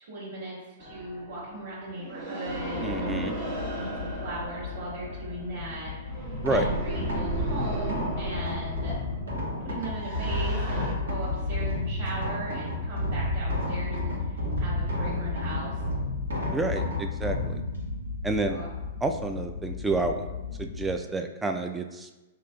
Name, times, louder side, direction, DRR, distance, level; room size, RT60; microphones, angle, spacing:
voice 1, 0.1-9.0 9.6-15.8 18.4-18.7, right 1 dB, 65° right, -8 dB, 1.5 m, -38 dB
sound 1, 0.8-10.9, right 1 dB, 40° right, 1.0 m, -36 dB
sound 2, 2.5-21.0, left 6 dB, 70° left, 0.4 m, -38 dB
voice 2, 2.8-3.3 6.4-6.7 16.5-17.6 18.2-18.6 19.0-20.3 20.6-22.1, right 2 dB, 10° right, 6 dB, 0.3 m, -29 dB
sound 3, 6.3-20.6, left 1 dB, 90° right, 1.1 m, -32 dB
5.7 x 2.4 x 2.2 m, 1.1 s
hypercardioid pair, 120°, 0 cm